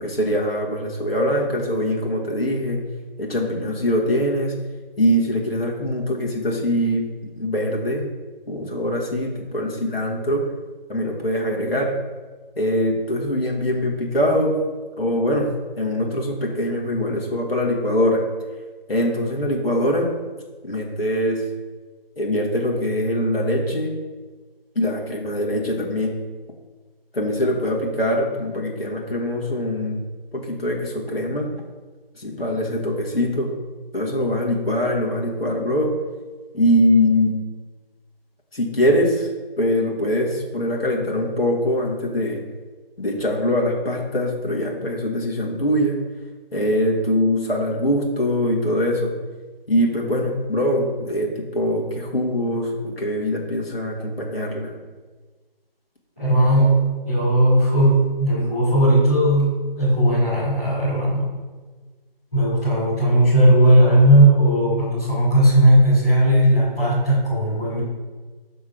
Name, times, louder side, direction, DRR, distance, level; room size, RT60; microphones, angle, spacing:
voice 1, 0.0-2.8 3.2-4.5 5.0-7.1 7.4-8.1 8.5-10.5 10.9-11.9 12.6-14.6 15.0-18.2 18.9-20.1 20.6-21.5 22.2-23.9 24.8-26.2 27.1-30.0 30.3-31.5 32.2-33.5 33.9-35.9 36.5-37.4 38.5-39.3 39.6-42.4 43.0-46.0 46.5-49.1 49.7-54.7, left 1 dB, 80° left, -2 dB, 1.9 m, -22 dB
voice 2, 56.2-61.3 62.3-67.8, right 1 dB, 5° left, -17 dB, 2.0 m, -17 dB
6.5 x 3.6 x 6.2 m, 1.4 s
figure-of-eight pair, 180°, 29 cm